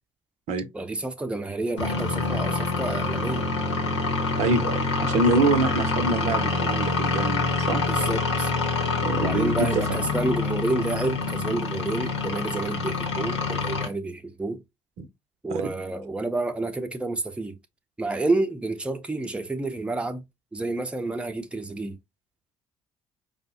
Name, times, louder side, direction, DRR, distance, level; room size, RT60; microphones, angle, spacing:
voice 1, 0.7-3.5 5.2-5.5 7.9-8.5 9.2-14.6 15.4-17.6 18.0-20.2 20.5-22.0, right 2 dB, 10° right, 0.6 m, -29 dB
sound 1, 1.8-13.9, left 3 dB, 80° left, 0.9 m, -26 dB
voice 2, 4.4-7.8 9.0-9.7 15.0-15.1, right 3 dB, 50° right, 0.7 m, -25 dB
5.1 x 2.1 x 2.7 m
figure-of-eight pair, 50°, 15 cm